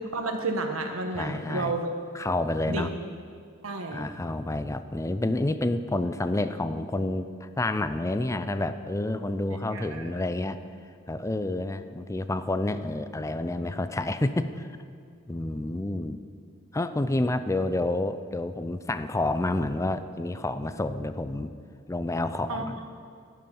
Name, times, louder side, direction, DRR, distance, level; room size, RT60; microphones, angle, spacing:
voice 1, 0.1-1.9 2.7-2.9 3.6-4.1 9.7-10.2 22.5-22.6, right 2 dB, 85° right, 4 dB, 1.3 m, -31 dB
voice 2, 1.1-1.8 2.1-2.9 3.9-10.6 11.1-14.7 15.3-16.2 16.7-21.5 21.9-22.8, left 2 dB, 15° left, 11 dB, 0.5 m, -29 dB
12.5 x 11.5 x 5.4 m, 2.3 s
head